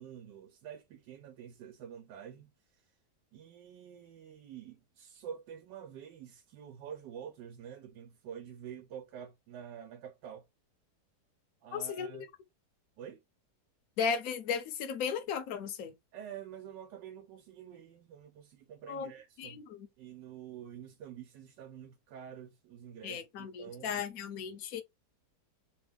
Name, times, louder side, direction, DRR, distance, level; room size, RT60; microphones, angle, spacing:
voice 1, 0.0-2.9 3.3-10.5 11.6-12.3 13.0-13.2 16.1-19.6 20.0-24.0, right 9 dB, 90° right, 1.3 m, -48 dB
voice 2, 11.7-12.3 14.0-15.9 18.9-19.1 19.4-19.9 23.0-24.8, left 6 dB, 65° left, 1.1 m, -35 dB
3.2 x 2.3 x 3.3 m
omnidirectional pair, 1.8 m